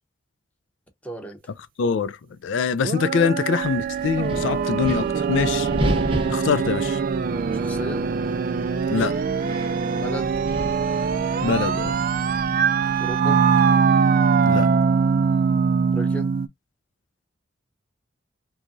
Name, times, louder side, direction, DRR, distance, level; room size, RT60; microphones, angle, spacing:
voice 1, 1.0-1.4 7.5-8.1 10.0-10.4 13.0-13.4 15.9-16.3, right 1 dB, 10° left, 0.7 m, -34 dB
voice 2, 1.8-5.7 6.3-7.0 8.9-9.2 11.4-12.0 14.5-14.7, left 5 dB, 80° left, 0.4 m, -24 dB
sound 1, 2.8-16.5, right 5 dB, 50° right, 0.3 m, -22 dB
Wind, 3.6-13.1, equal, 30° right, 0.7 m, -33 dB
2.9 x 2.3 x 2.5 m
head